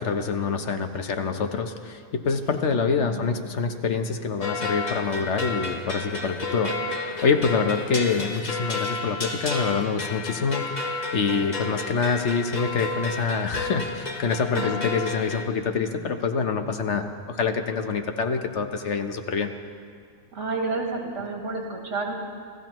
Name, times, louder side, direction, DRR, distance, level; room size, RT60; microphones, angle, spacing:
voice 1, 0.0-19.5, left 5 dB, 70° left, 6 dB, 1.2 m, -26 dB
sound 1, 1.4-1.7 2.4-2.7 3.2-4.0 5.8-6.1 6.4-7.7, right 3 dB, 50° right, 1.3 m, -45 dB
voice 2, 2.7-3.3 14.5-14.8 20.3-22.1, right 3 dB, 70° right, 0 dB, 2.2 m, -30 dB
sound 2, 4.4-15.5, left 3 dB, 35° left, 1.4 m, -31 dB
29.0 x 14.5 x 3.1 m, 2.1 s
omnidirectional pair, 1.3 m